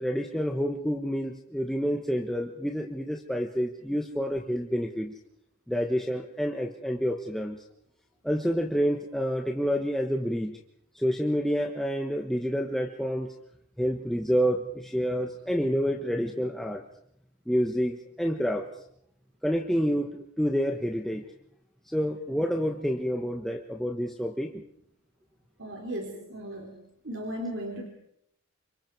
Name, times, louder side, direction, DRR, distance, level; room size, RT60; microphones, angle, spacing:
voice 1, 0.0-5.1 5.7-7.6 8.2-10.6 10.9-13.3 13.8-16.8 17.5-18.7 19.4-21.2 21.9-24.6, equal, ahead, 1 dB, 1.3 m, -28 dB
voice 2, 25.6-26.8 27.0-27.9, right 1 dB, 65° right, 2 dB, 3.4 m, -36 dB
28.5 x 25.5 x 4.7 m, 0.72 s
head